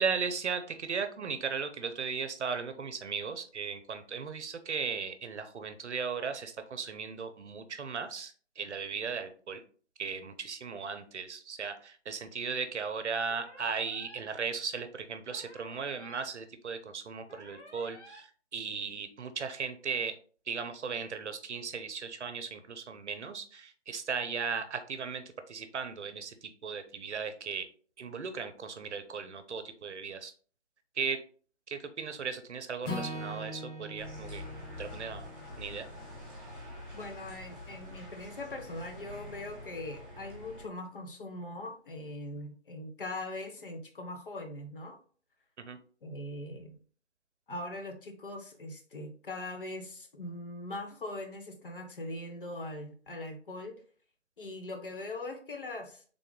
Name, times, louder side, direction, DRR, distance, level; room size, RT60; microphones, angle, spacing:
voice 1, 0.0-9.6 10.0-20.1 20.5-27.7 28.0-30.3 31.0-31.2 31.7-34.5 34.8-35.3 35.6-35.9 45.6-45.8, right 5 dB, 70° right, 9 dB, 0.7 m, -37 dB
sound 1, 13.3-14.2 15.3-16.2 17.3-18.2, left 1 dB, 70° left, 1.6 m, -52 dB
Acoustic guitar / Strum, 32.8-37.1, left 1 dB, 85° left, 1.6 m, -42 dB
sound 2, 34.0-40.7, left 1 dB, 5° right, 1.0 m, -46 dB
voice 2, 36.9-45.0 46.0-46.8 47.5-53.8 54.4-56.0, left 2 dB, 50° left, 4 dB, 0.7 m, -41 dB
3.6 x 2.3 x 3.6 m, 0.43 s
figure-of-eight pair, 165°, 35 cm